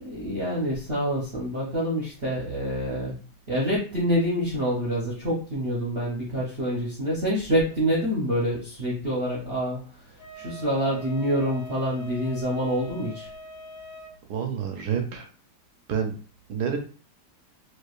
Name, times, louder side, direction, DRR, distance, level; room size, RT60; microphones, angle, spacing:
voice 1, 0.0-3.2 3.5-10.0 10.3-13.3, equal, 50° right, -6 dB, 0.8 m, -27 dB
Wind instrument woodwind instrument, 10.2-14.1, left 1 dB, 90° left, 1.6 m, -43 dB
voice 2, 14.3-15.3 15.9-16.1 16.5-16.8, right 7 dB, 70° right, 4 dB, 1.0 m, -28 dB
4.6 x 2.4 x 2.4 m, 0.38 s
omnidirectional pair, 2.0 m